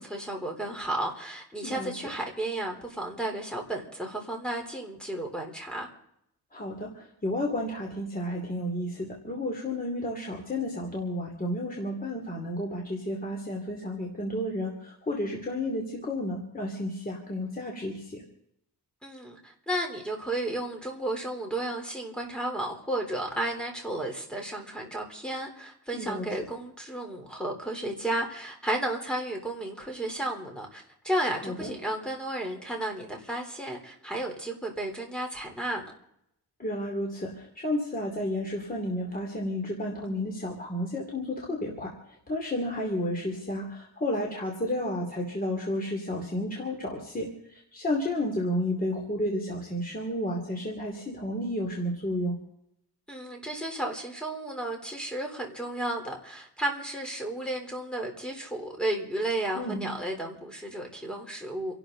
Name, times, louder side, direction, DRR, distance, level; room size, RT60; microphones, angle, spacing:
voice 1, 0.0-5.9 19.0-35.9 53.1-61.7, right 1 dB, ahead, 2 dB, 3.7 m, -33 dB
voice 2, 6.5-18.2 25.9-26.3 31.4-31.7 36.6-41.9 42.3-52.3 59.5-59.8, left 1 dB, 20° left, 0 dB, 2.8 m, -32 dB
29.0 x 12.0 x 3.9 m, 0.77 s
wide cardioid pair, 150°, 40 cm